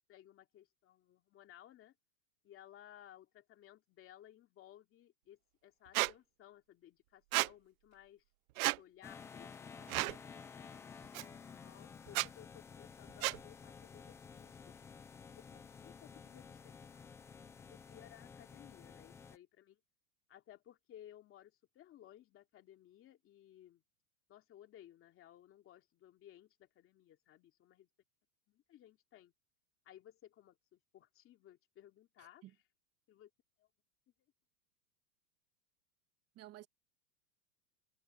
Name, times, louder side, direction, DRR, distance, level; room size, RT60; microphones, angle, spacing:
voice 1, 0.1-1.9 2.4-8.2 8.7-10.8 11.5-14.8 15.3-16.8 17.4-19.8 20.3-23.8 24.3-27.9 28.5-29.3 29.8-32.6 33.1-33.3 33.6-33.7, left 12 dB, 25° left, 2.8 m, -59 dB
Squeak, 5.9-6.1 7.3-7.5 8.6-8.8 9.9-10.2 11.1-11.2 12.1-12.3 13.2-13.4, right 21 dB, 60° right, 0.5 m, -32 dB
sound 1, 9.0-19.4, left 6 dB, 5° left, 0.4 m, -53 dB
voice 2, 32.2-32.5 36.3-36.7, right 15 dB, 30° right, 1.4 m, -54 dB
supercardioid pair, 160°, 48 cm